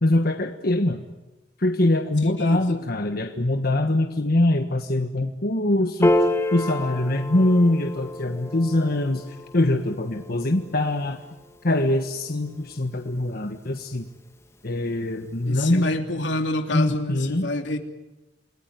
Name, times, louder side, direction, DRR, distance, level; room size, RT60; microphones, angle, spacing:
voice 1, 0.0-1.0 1.6-6.1 6.5-9.3 9.5-11.2 11.6-14.1 14.6-15.9 16.7-17.5, left 1 dB, 55° left, 6 dB, 1.4 m, -23 dB
voice 2, 2.2-2.9 15.4-17.8, left 1 dB, 85° left, 4 dB, 3.0 m, -28 dB
Piano, 6.0-12.6, left 1 dB, 15° left, 1.8 m, -29 dB
28.5 x 20.5 x 9.5 m, 1.1 s
head